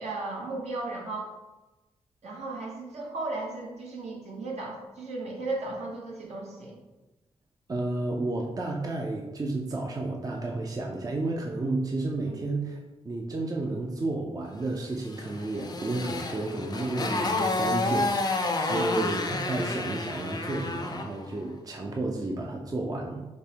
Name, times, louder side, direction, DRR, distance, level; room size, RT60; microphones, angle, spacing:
voice 1, 0.0-1.3 2.2-6.8 12.3-12.4 18.7-18.9, right 2 dB, 70° right, -3 dB, 1.0 m, -35 dB
voice 2, 7.7-12.8 13.0-23.3, right 2 dB, 30° right, 0 dB, 0.5 m, -31 dB
Motorcycle, 15.1-21.2, left 2 dB, 35° left, 0.5 m, -30 dB
5.2 x 2.0 x 2.9 m, 1.1 s
cardioid pair, 50°, 11 cm